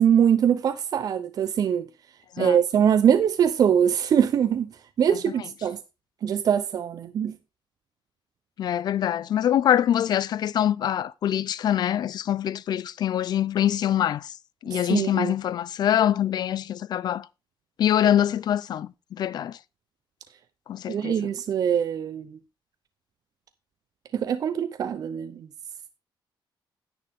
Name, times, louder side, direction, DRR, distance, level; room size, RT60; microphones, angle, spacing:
voice 1, 0.0-1.9 2.4-4.7 5.0-5.8 6.2-7.4 14.7-15.3 20.9-22.4 24.1-25.5, right 8 dB, 50° right, 0.7 m, -23 dB
voice 2, 8.6-14.3 14.6-17.3 17.8-19.6 20.7-21.3, left 10 dB, 55° left, 0.5 m, -24 dB
10.0 x 9.2 x 3.5 m
cardioid pair, 160°, 8 cm